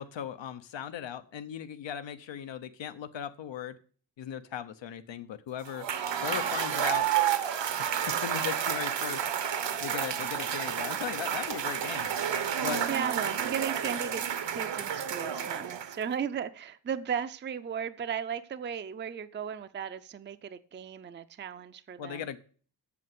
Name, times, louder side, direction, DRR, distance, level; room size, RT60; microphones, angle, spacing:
voice 1, 0.0-3.8 4.2-5.8 6.2-7.1 7.8-9.3 9.8-12.1 12.6-12.9 22.0-22.4, left 9 dB, 90° left, 9 dB, 0.8 m, -38 dB
Cheering / Applause / Crowd, 5.7-16.1, right 9 dB, 75° right, 1.1 m, -30 dB
voice 2, 12.9-14.2 14.5-22.3, right 7 dB, 25° right, 12 dB, 0.4 m, -36 dB
8.4 x 6.6 x 7.7 m, 0.42 s
wide cardioid pair, 160°, 43 cm